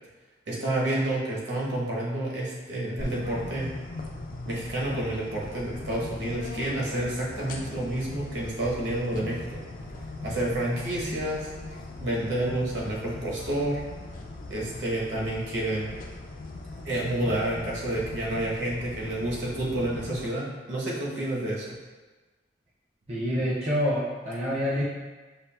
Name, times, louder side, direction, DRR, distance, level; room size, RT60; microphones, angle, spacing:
voice 1, 0.5-3.7 4.4-9.6 10.2-13.8 14.5-15.9 16.8-21.7, right 1 dB, 75° right, -5 dB, 0.9 m, -29 dB
sound 1, 3.0-20.3, left 2 dB, 45° left, 0.3 m, -40 dB
voice 2, 23.1-24.8, equal, 35° right, -7 dB, 0.5 m, -27 dB
5.3 x 2.4 x 2.2 m, 1.2 s
head